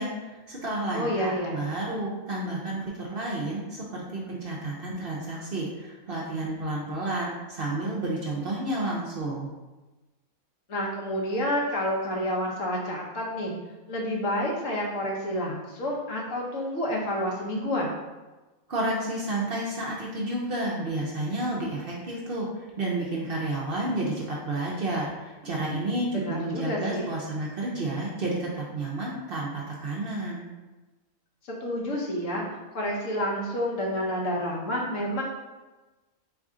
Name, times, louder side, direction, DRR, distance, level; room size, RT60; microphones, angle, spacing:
voice 1, 0.0-9.5 18.7-22.5 22.8-30.5, right 2 dB, 55° right, -3 dB, 0.7 m, -31 dB
voice 2, 0.9-1.6 10.7-13.5 13.9-17.9 26.1-27.1 31.6-32.4 32.7-35.2, equal, 60° left, -2 dB, 1.2 m, -29 dB
3.7 x 3.4 x 3.6 m, 1.2 s
omnidirectional pair, 1.5 m